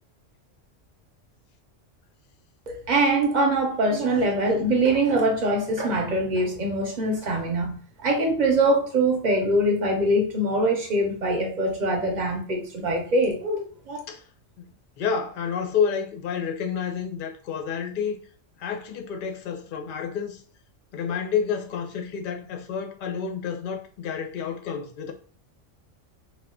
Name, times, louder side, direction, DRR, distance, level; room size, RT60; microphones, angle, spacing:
voice 1, 2.7-14.0, right 1 dB, 45° right, 0.8 m, -23 dB
voice 2, 15.0-18.2 18.6-20.4 20.9-25.1, left 7 dB, 55° left, 0.6 m, -29 dB
2.3 x 2.3 x 3.6 m
omnidirectional pair, 1.3 m